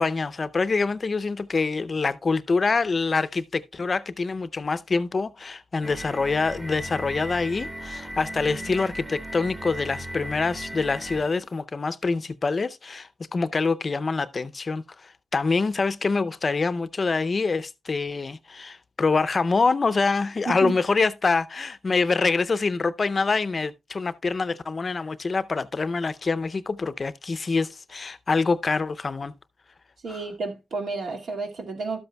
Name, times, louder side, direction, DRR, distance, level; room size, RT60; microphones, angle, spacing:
voice 1, 0.0-29.3 30.1-30.2, left 4 dB, 35° left, 0.5 m, -25 dB
sound 1, 5.8-11.4, right 1 dB, 10° right, 1.0 m, -37 dB
voice 2, 30.0-32.0, right 4 dB, 70° right, 2.1 m, -31 dB
12.5 x 7.9 x 2.2 m
cardioid pair, 110°, 0 cm